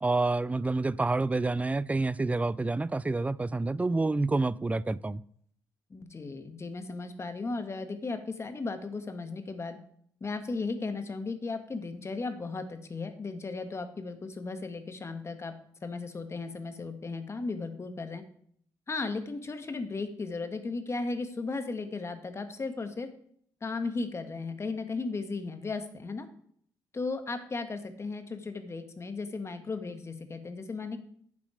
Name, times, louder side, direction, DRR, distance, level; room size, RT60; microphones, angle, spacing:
voice 1, 0.0-5.2, right 3 dB, 20° right, 20 dB, 0.4 m, -28 dB
voice 2, 5.9-9.8 10.2-15.5 15.8-18.2 18.9-23.1 23.6-26.3 26.9-31.0, left 3 dB, 35° left, 9 dB, 1.4 m, -36 dB
9.4 x 7.2 x 5.0 m, 0.64 s
cardioid pair, 65°, 8 cm